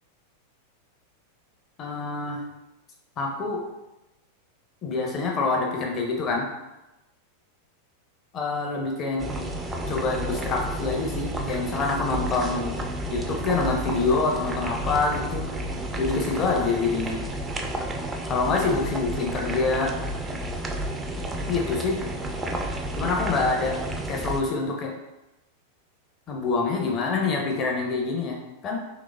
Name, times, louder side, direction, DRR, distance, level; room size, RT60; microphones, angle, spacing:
voice 1, 1.8-2.4 3.2-3.6 4.8-6.5 8.3-9.3 9.9-12.8 13.1-15.5 16.0-17.2 18.3-19.9 21.5-22.0 23.0-23.8 24.1-24.9 26.3-28.8, left 3 dB, 30° left, 0 dB, 0.7 m, -26 dB
sound 1, 9.2-24.4, right 1 dB, 15° right, 0.4 m, -31 dB
3.8 x 3.1 x 2.4 m, 0.97 s
figure-of-eight pair, 90°, 0 cm